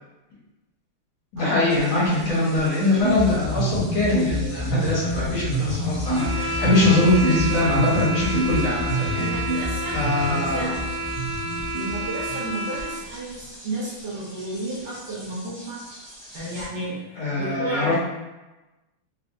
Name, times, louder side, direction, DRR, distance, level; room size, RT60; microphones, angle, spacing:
voice 1, 1.3-9.3 9.9-10.7 17.2-18.0, left 2 dB, 70° left, -6 dB, 1.8 m, -22 dB
sound 1, 1.6-16.7, equal, 35° right, 0.4 m, -44 dB
sound 2, 3.0-12.6, right 1 dB, 85° right, 1.5 m, -27 dB
sound 3, 6.0-13.1, right 2 dB, 45° left, 0.8 m, -30 dB
voice 2, 9.2-10.7 11.7-15.8 16.3-18.0, right 1 dB, 65° right, -7 dB, 1.5 m, -33 dB
4.2 x 2.4 x 2.5 m, 1.1 s
omnidirectional pair, 2.3 m